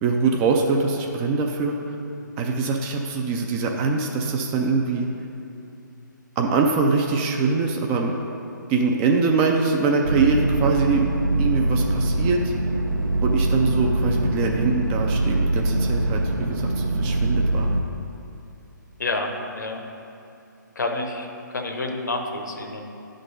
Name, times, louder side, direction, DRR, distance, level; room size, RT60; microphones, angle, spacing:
voice 1, 0.0-1.8 2.4-5.1 6.4-8.2 8.7-11.1 11.4-12.5 13.2-16.2 16.5-17.7, right 4 dB, 15° right, 1 dB, 0.4 m, -23 dB
sound 1, 10.0-17.8, right 2 dB, 85° right, 0.8 m, -23 dB
voice 2, 19.0-19.8 20.8-21.3 21.5-22.8, left 2 dB, 65° left, 4 dB, 0.9 m, -28 dB
9.4 x 3.9 x 5.4 m, 2.7 s
figure-of-eight pair, 135°, 11 cm